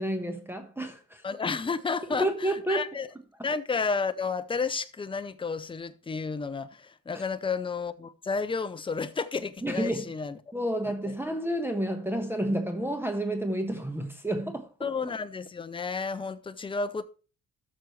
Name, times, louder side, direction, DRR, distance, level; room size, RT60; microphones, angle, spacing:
voice 1, 0.0-1.2 2.1-2.9 7.1-7.2 9.6-10.1 10.5-14.9, right 1 dB, 5° right, 1.2 m, -30 dB
voice 2, 1.2-3.1 3.4-10.4 11.1-11.2 14.8-17.0, left 4 dB, 15° left, 0.7 m, -31 dB
13.5 x 6.3 x 3.1 m
cardioid pair, 90°, 30 cm